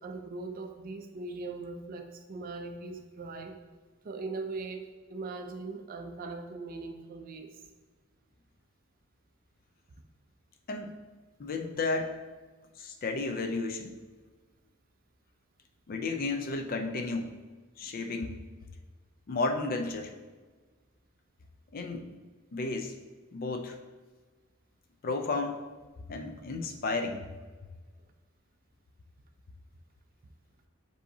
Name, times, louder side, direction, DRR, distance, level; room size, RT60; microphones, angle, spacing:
voice 1, 0.0-3.6 4.0-7.5, right 3 dB, 45° right, 6 dB, 0.4 m, -40 dB
voice 2, 10.7-11.0 11.4-12.2 12.8-14.0 15.9-17.4 17.8-18.4 19.3-20.1 21.7-22.1 22.5-23.0 23.3-23.8 25.0-25.6 26.1-27.3, left 3 dB, 45° left, 5 dB, 0.4 m, -33 dB
7.1 x 2.7 x 2.7 m, 1.3 s
head